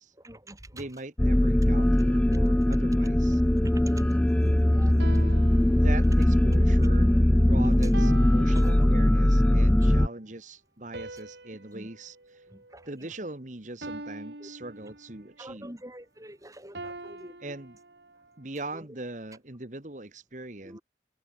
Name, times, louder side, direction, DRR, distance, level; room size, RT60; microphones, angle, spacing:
voice 1, 0.1-1.0 2.3-2.4 3.6-6.1 7.1-7.2 7.6-7.9 8.4-8.7 9.5-10.0 11.0-11.1 11.7-11.9 12.5-13.2 14.4-14.5 14.8-14.9 15.4-17.4 18.1-18.2 18.7-18.9 20.6-20.8, right 1 dB, 20° right, 6.0 m, -46 dB
voice 2, 0.7-3.4 5.7-12.4 12.9-15.7 17.4-17.8 18.4-20.8, right 2 dB, 45° right, 1.7 m, -41 dB
sound 1, 1.2-10.1, left 1 dB, 10° left, 0.3 m, -21 dB
sound 2, 5.0-6.4 7.9-9.3 10.9-13.3 13.8-15.3 16.8-18.3, right 2 dB, 75° right, 3.2 m, -43 dB
head